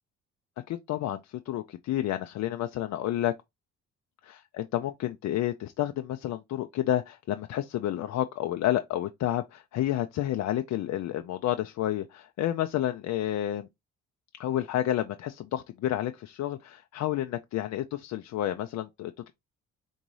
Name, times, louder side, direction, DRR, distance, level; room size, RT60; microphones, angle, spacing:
voice 1, 0.7-3.3 4.2-13.7 14.4-19.3, left 12 dB, 65° left, 0.5 m, -30 dB
4.0 x 3.6 x 3.0 m
cardioid pair, 90°, 30 cm